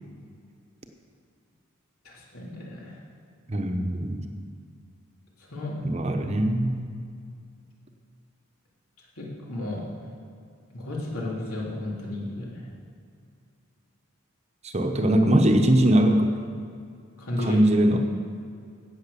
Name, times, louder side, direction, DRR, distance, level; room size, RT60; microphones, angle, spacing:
voice 1, 2.0-3.0 5.4-5.8 9.2-10.1 10.7-12.6 17.2-17.6, left 1 dB, 85° left, -3 dB, 3.2 m, -33 dB
voice 2, 3.5-4.3 5.8-6.9 14.6-16.3 17.4-18.0, right 1 dB, 30° right, 4 dB, 0.9 m, -21 dB
16.5 x 6.4 x 6.9 m, 2.3 s
head